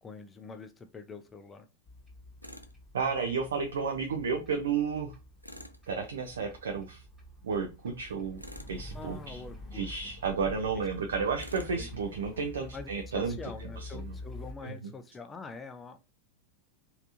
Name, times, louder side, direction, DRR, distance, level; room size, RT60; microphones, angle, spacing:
voice 1, 0.0-1.7 8.9-10.1 11.7-11.9 12.7-12.9 13.1-16.0, left 4 dB, 15° left, 8 dB, 0.4 m, -44 dB
sound 1, 1.9-14.5, left 1 dB, ahead, 1.1 m, -47 dB
Tools, 2.4-2.7 5.4-5.8 8.4-8.8 11.4-11.8, equal, 90° left, 0.4 m, -47 dB
voice 2, 2.9-5.1 5.9-7.0 7.4-8.4 8.7-9.4 9.7-13.4 13.8-14.1 14.6-14.9, right 5 dB, 65° right, 5 dB, 0.4 m, -32 dB
3.2 x 2.7 x 2.6 m, 0.28 s
figure-of-eight pair, 90°, 0 cm